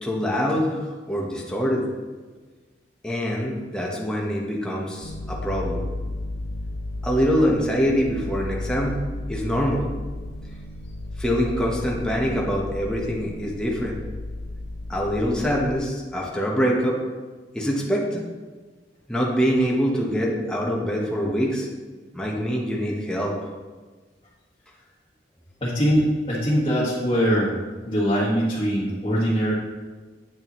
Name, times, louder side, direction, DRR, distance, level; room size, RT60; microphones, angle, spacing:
voice 1, 0.0-1.8 3.0-5.9 7.0-9.0 9.3-9.8 11.2-14.0 14.9-17.0 17.5-18.2 19.1-21.7 22.1-23.4, equal, 5° left, -3 dB, 1.1 m, -24 dB
sound 1, 5.0-15.8, left 2 dB, 85° left, 0.9 m, -33 dB
voice 2, 25.6-27.5 27.8-29.5, equal, 30° left, -10 dB, 1.6 m, -22 dB
8.8 x 6.7 x 3.1 m, 1.4 s
head